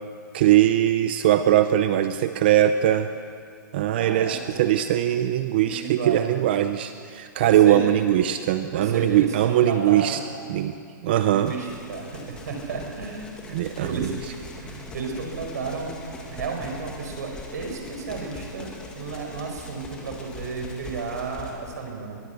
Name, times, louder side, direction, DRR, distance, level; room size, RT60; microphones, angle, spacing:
voice 1, 0.3-3.1 3.7-10.2 10.5-10.7 11.0-11.5 13.5-14.1, right 12 dB, 30° right, 10 dB, 0.6 m, -21 dB
voice 2, 4.0-4.6 5.6-6.5 7.4-8.0 8.7-10.2 11.3-14.1 14.6-15.9 16.3-22.2, right 4 dB, 55° right, 2 dB, 4.9 m, -33 dB
sound 1, 11.4-21.5, left 3 dB, 10° left, 2.0 m, -42 dB
22.5 x 22.0 x 8.2 m, 2.3 s
hypercardioid pair, 180°, 11 cm